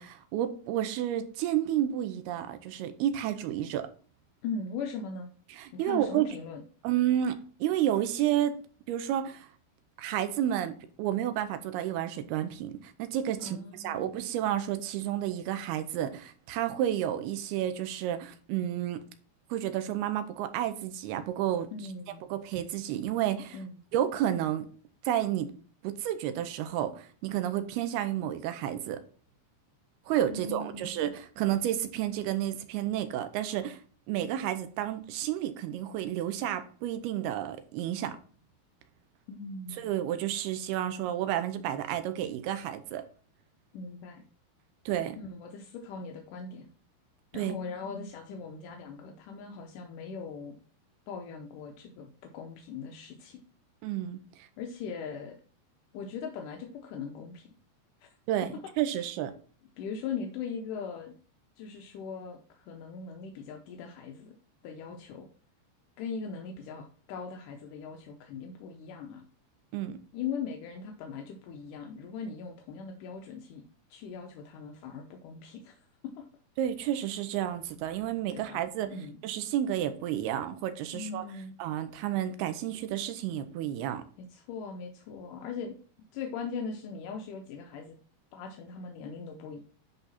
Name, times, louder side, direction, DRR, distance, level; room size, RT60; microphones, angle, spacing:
voice 1, 0.0-3.9 5.5-6.3 6.8-8.6 8.9-9.5 10.0-19.0 19.5-21.7 22.3-23.6 23.9-24.7 25.0-25.5 25.8-29.0 30.1-33.8 34.1-38.2 39.8-43.0 44.9-45.2 47.3-47.6 53.8-54.5 58.3-59.3 69.7-70.0 76.6-78.9 79.2-81.3 81.6-84.0, right 11 dB, 80° right, 2.7 m, -31 dB
voice 2, 4.4-5.3 5.7-6.6 13.4-14.1 21.7-22.3 23.5-23.8 30.3-30.9 39.3-40.0 43.7-44.2 45.2-46.7 47.3-50.6 51.1-53.4 54.6-55.3 55.9-57.5 59.8-61.1 61.6-64.3 64.6-65.3 66.0-69.2 70.1-73.6 73.9-75.8 76.0-76.3 78.3-78.6 78.9-79.2 80.9-81.5 84.3-85.7 86.1-88.0 88.3-89.6, left 5 dB, 75° left, 2.0 m, -40 dB
10.5 x 3.9 x 4.2 m
omnidirectional pair, 4.6 m